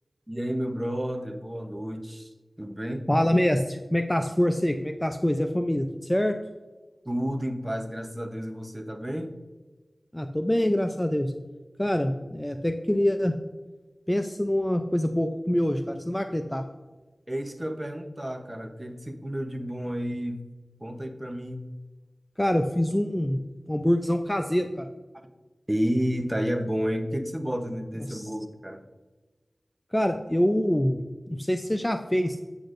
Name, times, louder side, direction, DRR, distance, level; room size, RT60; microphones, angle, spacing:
voice 1, 0.3-2.3 2.6-3.1 7.0-9.3 17.3-20.4 20.8-21.7 25.7-28.8, equal, 20° right, 6 dB, 0.8 m, -31 dB
voice 2, 3.1-6.4 10.1-11.3 11.8-13.3 14.1-16.6 22.4-23.4 23.7-24.9 28.1-28.3 29.9-31.0 31.3-32.4, left 1 dB, 10° left, 6 dB, 0.4 m, -25 dB
8.5 x 7.9 x 2.6 m, 1.2 s
wide cardioid pair, 65°, 0 cm